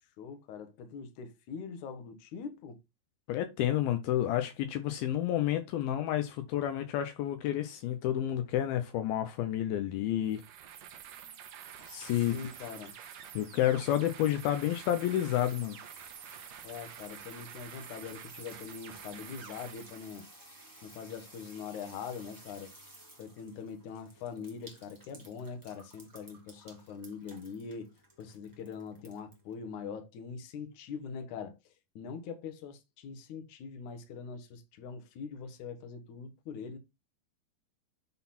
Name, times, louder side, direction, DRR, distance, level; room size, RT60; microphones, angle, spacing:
voice 1, 0.2-2.8 12.1-13.0 16.6-20.3 20.8-22.7 23.2-27.9 28.2-36.8, left 6 dB, 60° left, 2.5 m, -43 dB
voice 2, 3.3-10.4 11.9-12.4 13.3-15.8, left 12 dB, 80° left, 2.6 m, -30 dB
sound 1, 10.2-20.2, right 10 dB, 70° right, 2.3 m, -49 dB
sound 2, 10.7-29.5, right 1 dB, 15° right, 0.7 m, -56 dB
9.6 x 4.0 x 4.2 m
omnidirectional pair, 4.4 m